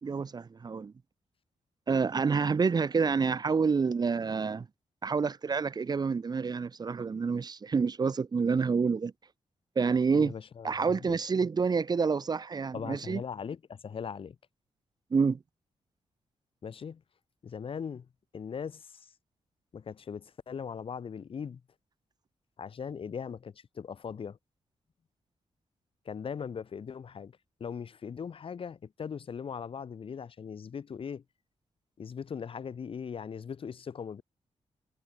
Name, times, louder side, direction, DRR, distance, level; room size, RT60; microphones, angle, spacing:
voice 1, 0.0-0.9 1.9-4.7 5.0-9.1 9.8-10.3 10.6-13.2 15.1-15.4, right 5 dB, 35° right, 1.1 m, -28 dB
voice 2, 10.1-11.2 12.7-14.4 16.6-17.0 17.4-18.1 18.3-19.1 19.7-21.6 22.6-24.4 26.1-31.2 32.0-34.2, left 6 dB, 50° left, 2.0 m, -39 dB
wide cardioid pair, 140°, 12 cm